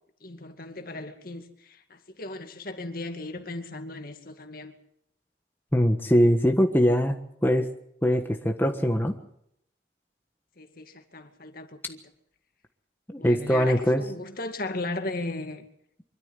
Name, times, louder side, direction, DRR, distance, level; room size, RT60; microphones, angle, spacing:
voice 1, 0.2-4.7 10.6-12.0 13.2-15.7, left 2 dB, 55° left, 2.3 m, -36 dB
voice 2, 5.7-7.2 7.4-7.7 8.0-9.2 13.1-14.0, equal, 10° left, 1.3 m, -22 dB
24.5 x 13.5 x 8.2 m
head